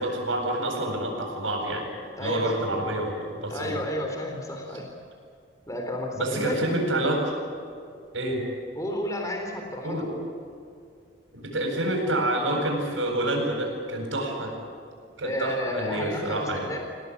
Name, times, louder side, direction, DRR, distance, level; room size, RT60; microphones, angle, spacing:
voice 1, 0.0-1.9 2.2-3.9 6.1-7.3 8.1-8.4 9.8-10.1 11.3-14.5 15.2-16.7, right 1 dB, 90° right, -1 dB, 7.8 m, -28 dB
voice 2, 2.2-3.0 3.5-4.8 5.7-6.7 8.8-10.3 15.2-16.8, left 1 dB, 20° left, 2 dB, 3.5 m, -32 dB
27.5 x 18.5 x 9.8 m, 2.4 s
head